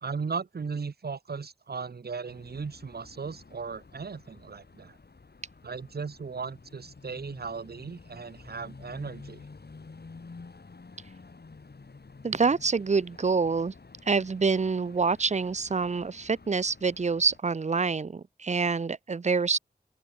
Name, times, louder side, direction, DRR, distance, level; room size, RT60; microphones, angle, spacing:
voice 1, 0.0-5.0 5.6-9.5, right 5 dB, 80° right, 0.8 m, -37 dB
sound 1, 2.3-17.4, left 4 dB, 85° left, 4.1 m, -50 dB
voice 2, 12.2-13.7 14.1-19.6, right 4 dB, 45° right, 0.5 m, -26 dB
open air
wide cardioid pair, 65°, 16 cm